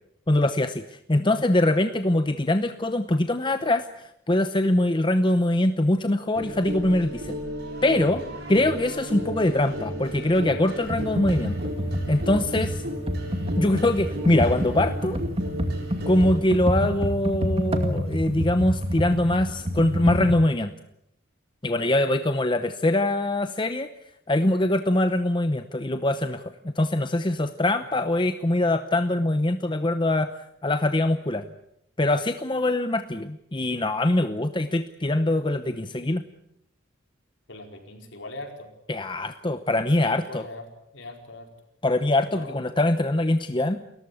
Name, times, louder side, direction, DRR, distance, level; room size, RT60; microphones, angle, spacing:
voice 1, 0.3-7.4 7.8-8.2 8.5-11.6 12.1-12.8 13.6-15.2 16.1-20.7 21.6-23.9 24.3-30.3 30.6-31.5 32.0-36.2 38.9-40.4 41.8-43.8, left 1 dB, 25° left, 9 dB, 0.8 m, -23 dB
sound 1, 6.3-16.4, equal, 55° right, 6.8 m, -34 dB
Computer keyboard, 10.9-20.4, equal, 30° right, 2.2 m, -27 dB
voice 2, 37.5-38.7 40.0-40.6 40.9-41.5 42.3-42.7, left 2 dB, 60° left, 3 dB, 4.7 m, -41 dB
29.5 x 14.5 x 8.4 m, 0.79 s
head